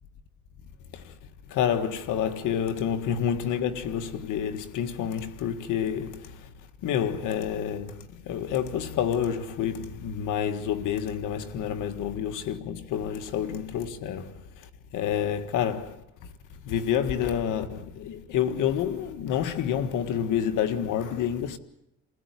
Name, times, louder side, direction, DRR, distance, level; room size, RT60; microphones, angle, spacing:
voice 1, 1.5-6.4 6.8-14.3 14.9-16.0 16.7-21.6, left 9 dB, 85° left, 1.8 m, -28 dB
29.0 x 16.5 x 9.5 m
cardioid pair, 90°, 30 cm